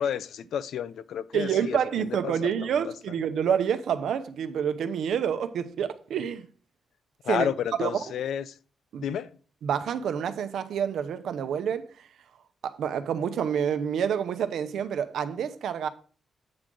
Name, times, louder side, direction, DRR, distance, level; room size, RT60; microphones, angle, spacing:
voice 1, 0.0-2.3 2.6-2.9 7.2-8.6 9.0-9.3, left 8 dB, 85° left, 0.4 m, -31 dB
voice 2, 1.3-6.5 7.3-7.5 7.8-7.9 8.9-9.1 9.6-11.9 12.6-15.9, right 8 dB, 85° right, 0.8 m, -28 dB
8.6 x 3.9 x 6.1 m
wide cardioid pair, 135°, 0 cm